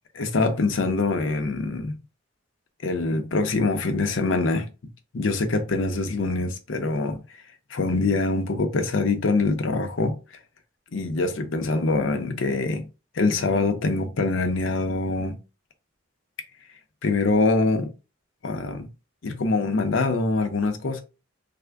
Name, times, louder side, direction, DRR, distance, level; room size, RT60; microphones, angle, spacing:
voice 1, 0.1-2.0 2.8-4.7 5.1-7.2 7.7-10.2 10.9-12.9 13.2-15.4 17.0-17.9 18.4-18.9 19.2-21.0, left 3 dB, 75° left, 0.6 m, -24 dB
3.3 x 2.1 x 3.5 m
head